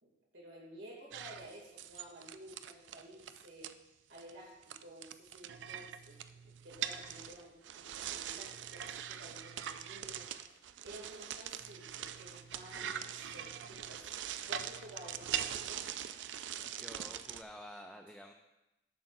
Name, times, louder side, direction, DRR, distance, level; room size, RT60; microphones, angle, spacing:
voice 1, 0.0-3.7 4.1-6.2 6.4-10.5 10.8-14.1 14.5-15.9, right 1 dB, 90° right, -2 dB, 2.5 m, -53 dB
sound 1, 1.1-3.7 4.1-4.3 4.6-17.4, right 10 dB, 70° right, 0.4 m, -42 dB
voice 2, 12.8-13.2 16.8-18.3, equal, 5° left, 3 dB, 0.4 m, -51 dB
11.0 x 7.2 x 2.6 m, 0.97 s
head